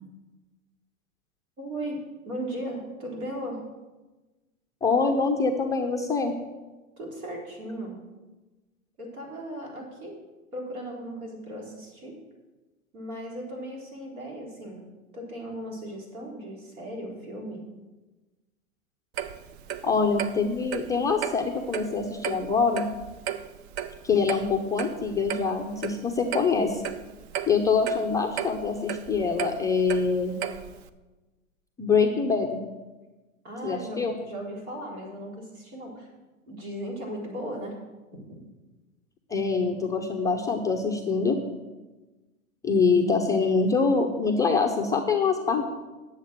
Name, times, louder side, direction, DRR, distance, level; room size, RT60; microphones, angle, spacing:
voice 1, 1.6-2.0 2.3-3.6 7.0-8.0 9.0-10.2 10.5-12.2 12.9-14.8 15.1-17.6 33.4-36.1 36.5-37.8 38.3-38.4, right 1 dB, 75° right, -1 dB, 4.0 m, -37 dB
voice 2, 4.8-6.3 19.8-22.9 24.0-26.8 27.5-30.3 31.8-32.6 33.6-34.2 39.3-41.4 42.6-45.7, left 4 dB, 10° left, 1 dB, 0.4 m, -24 dB
Clock, 19.2-30.9, right 9 dB, 50° right, 0.8 m, -35 dB
10.5 x 7.4 x 6.4 m, 1.2 s
hypercardioid pair, 110°, 43 cm